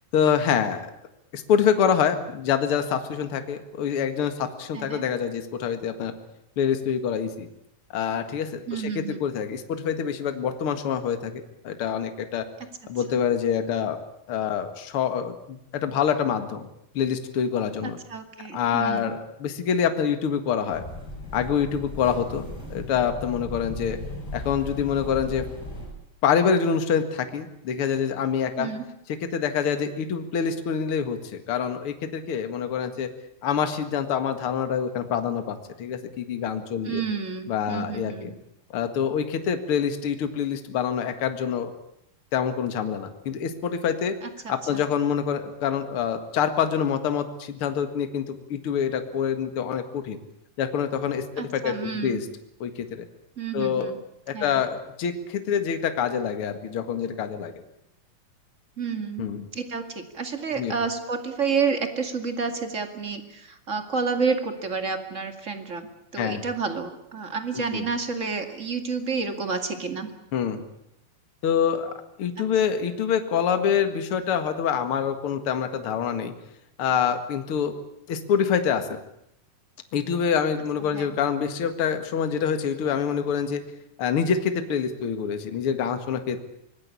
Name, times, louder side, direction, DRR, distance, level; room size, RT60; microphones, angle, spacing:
voice 1, 0.1-0.9 1.3-6.1 6.6-7.5 7.9-12.5 12.9-14.0 14.3-16.7 16.9-18.0 18.5-20.8 21.3-24.0 24.3-25.5 26.2-28.7 29.1-33.1 33.4-37.0 37.5-38.3 38.7-41.7 42.3-44.2 44.5-50.2 50.6-52.3 52.6-53.0 53.5-53.9 54.3-57.5 59.2-59.5 60.6-60.7 66.2-66.4 67.7-67.9 70.3-70.6 71.4-71.9 72.2-76.3 76.8-77.7 78.1-79.0 79.9-83.6 84.0-86.4, left 7 dB, 45° left, 8 dB, 2.2 m, -26 dB
voice 2, 8.7-9.3 13.1-13.2 17.8-19.2 28.6-28.8 36.8-38.3 44.2-44.8 51.4-52.2 53.4-54.0 54.3-54.6 58.8-70.1 80.8-81.2, right 5 dB, 25° right, 6 dB, 1.9 m, -30 dB
sound 1, 20.7-25.9, left 1 dB, 25° left, 8.4 m, -37 dB
24.5 x 20.0 x 8.5 m, 0.80 s
omnidirectional pair, 4.1 m